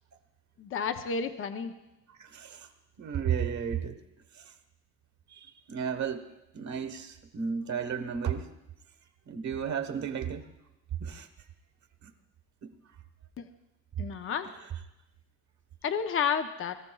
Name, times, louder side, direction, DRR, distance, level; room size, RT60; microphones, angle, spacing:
voice 1, 0.6-1.7 14.0-14.5 15.8-16.8, left 6 dB, 40° left, 8 dB, 0.7 m, -31 dB
voice 2, 2.1-2.7 3.0-4.0 4.3-4.5 5.3-6.2 6.5-8.5 9.3-10.5 11.0-11.3 12.0-12.1 12.6-12.7 14.6-14.7, right 7 dB, 60° right, 7 dB, 1.3 m, -33 dB
23.0 x 14.0 x 2.3 m, 0.94 s
cardioid pair, 145°, 32 cm